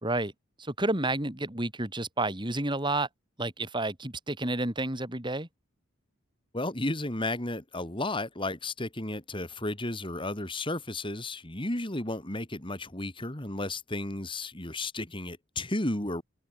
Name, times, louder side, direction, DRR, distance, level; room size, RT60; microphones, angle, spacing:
voice 1, 0.0-0.3 0.6-3.1 3.4-5.5, right 2 dB, 20° right, 3.0 m, -30 dB
voice 2, 6.5-16.2, left 2 dB, 25° left, 2.8 m, -33 dB
head